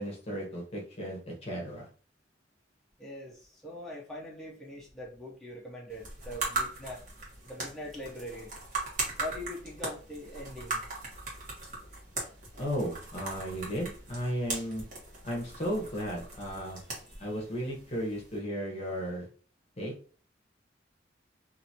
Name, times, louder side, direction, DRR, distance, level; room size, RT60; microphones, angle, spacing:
voice 1, 0.0-1.9 12.5-14.8 15.2-16.8 17.2-19.3 19.8-19.9, equal, 35° left, -2 dB, 1.0 m, -35 dB
voice 2, 3.0-7.0 7.4-8.5 9.2-10.8 17.1-17.3, left 1 dB, ahead, -5 dB, 0.7 m, -42 dB
sound 1, 5.9-18.4, right 3 dB, 45° right, 1.2 m, -39 dB
2.9 x 2.6 x 2.7 m, 0.41 s
head